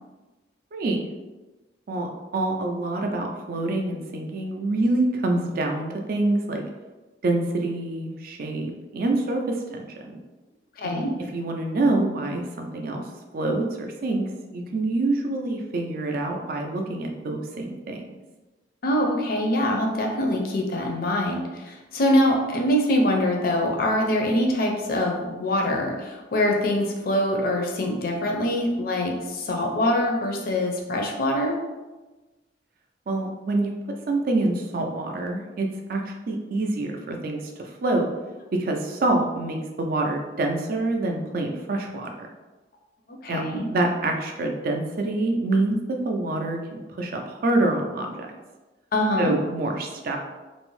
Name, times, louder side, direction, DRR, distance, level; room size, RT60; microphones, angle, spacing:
voice 1, 0.7-1.0 1.9-2.1 2.3-6.6 7.2-10.1 10.8-11.1 11.3-13.0 13.3-18.0 33.1-33.7 34.1-38.1 38.5-42.3 43.3-43.4 43.7-48.3 49.2-50.2, right 2 dB, 55° right, 2 dB, 0.4 m, -26 dB
voice 2, 10.8-11.1 18.8-31.6 43.2-43.7 48.9-49.4, left 1 dB, 55° left, 1 dB, 0.4 m, -24 dB
2.6 x 2.0 x 3.0 m, 1.2 s
head